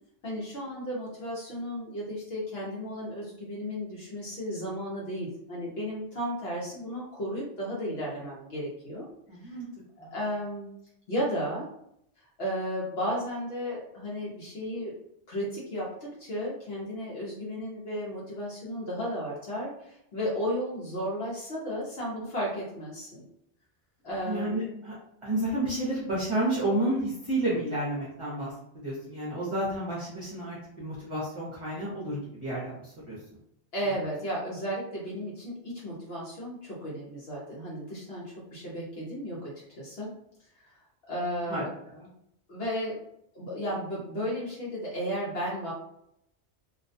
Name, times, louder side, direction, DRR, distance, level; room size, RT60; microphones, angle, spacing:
voice 1, 0.2-9.0 9.4-9.6 10.0-10.7 11.1-11.7 12.4-14.9 15.3-23.2 24.0-24.6 33.7-39.5 39.8-40.1 40.6-40.7 41.1-41.7 42.5-43.0 43.3-45.7, equal, 65° left, -5 dB, 0.9 m, -34 dB
voice 2, 9.3-9.7 10.0-10.1 24.3-24.9 25.2-32.7 33.1-33.2 41.5-41.6 41.9-42.1, right 1 dB, 30° right, -7 dB, 0.7 m, -31 dB
2.4 x 2.2 x 2.6 m, 0.76 s
omnidirectional pair, 1.1 m